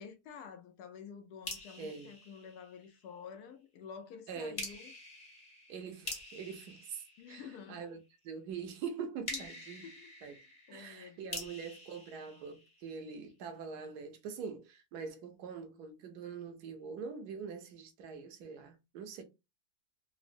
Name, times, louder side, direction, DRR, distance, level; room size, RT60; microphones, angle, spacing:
voice 1, 0.0-4.9 7.2-7.9 9.3-10.4 10.7-11.4, left 7 dB, 85° left, 1.2 m, -50 dB
sound 1, 1.4-3.2 4.6-7.9 9.2-13.2, left 2 dB, 30° left, 1.0 m, -46 dB
voice 2, 1.8-2.1 4.3-4.6 5.7-8.0 8.2-9.9 10.2-10.4 10.7-19.2, right 6 dB, 90° right, 1.2 m, -44 dB
3.6 x 2.1 x 2.5 m
omnidirectional pair, 1.6 m